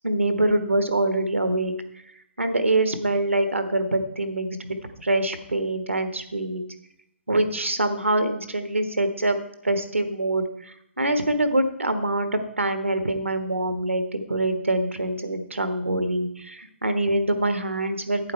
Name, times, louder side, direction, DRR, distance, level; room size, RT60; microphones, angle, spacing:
voice 1, 0.0-1.7 2.4-6.6 7.3-9.4 9.6-18.3, right 2 dB, 90° right, 9 dB, 1.3 m, -24 dB
11.5 x 8.7 x 4.5 m, 0.78 s
figure-of-eight pair, 130°, 7 cm